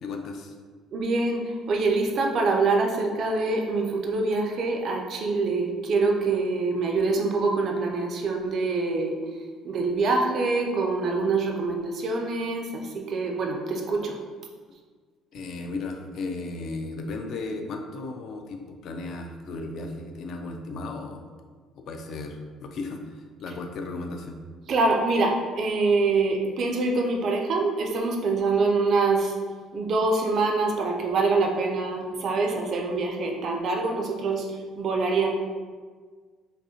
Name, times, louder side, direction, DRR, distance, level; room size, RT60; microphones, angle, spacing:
voice 1, 0.0-0.6 15.3-21.2 21.7-24.4, left 3 dB, 50° left, 4 dB, 0.3 m, -35 dB
voice 2, 0.9-14.2 24.7-29.4 29.7-35.3, right 3 dB, 40° right, 2 dB, 0.4 m, -25 dB
5.0 x 2.1 x 2.7 m, 1.6 s
cardioid pair, 175°, 0 cm